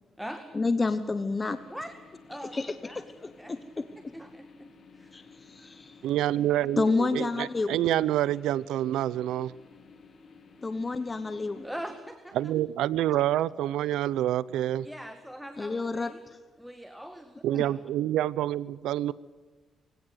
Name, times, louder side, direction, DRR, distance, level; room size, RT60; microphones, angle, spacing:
voice 1, 0.5-1.6 2.5-3.8 5.1-6.0 6.8-7.8 10.6-11.7 15.6-16.4 17.5-17.6, left 3 dB, 25° left, 11 dB, 1.2 m, -30 dB
sound 1, 1.4-12.0, left 4 dB, 50° left, 2.6 m, -54 dB
voice 2, 2.8-3.9 4.1-5.1 11.6-12.5 14.8-16.2 16.6-17.9, equal, ahead, 7 dB, 1.9 m, -42 dB
voice 3, 6.0-9.5 12.4-14.9 17.4-19.1, right 13 dB, 85° right, 21 dB, 0.7 m, -27 dB
24.5 x 16.5 x 8.1 m, 1.4 s
cardioid pair, 90°, 0 cm